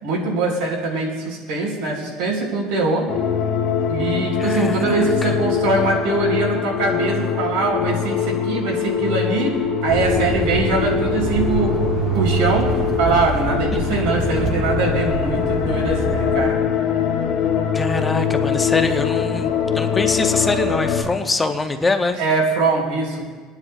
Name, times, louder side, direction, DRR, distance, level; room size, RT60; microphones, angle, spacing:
voice 1, 0.0-3.1 3.9-11.8 12.1-12.7 13.0-16.6 22.2-23.2, right 3 dB, 90° right, -2 dB, 3.6 m, -22 dB
sound 1, 3.1-21.0, left 7 dB, 50° left, 1.3 m, -23 dB
voice 2, 4.4-5.3 17.7-22.2, left 3 dB, 10° left, 6 dB, 0.5 m, -23 dB
sound 2, 9.9-16.5, right 4 dB, 35° right, 0.7 m, -25 dB
28.5 x 9.8 x 2.3 m, 1.5 s
cardioid pair, 165°, 0 cm